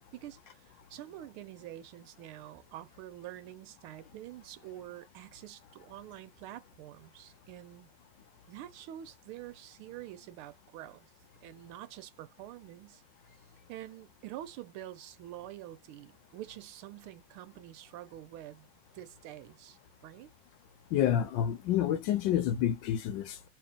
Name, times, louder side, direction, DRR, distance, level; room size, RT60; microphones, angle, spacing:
voice 1, 0.1-7.9 8.5-11.1 11.4-13.0 13.7-18.7 18.9-20.3, right 13 dB, 85° right, 1.5 m, -47 dB
voice 2, 20.9-23.5, left 10 dB, 75° left, 1.2 m, -29 dB
3.3 x 2.8 x 3.6 m
omnidirectional pair, 2.3 m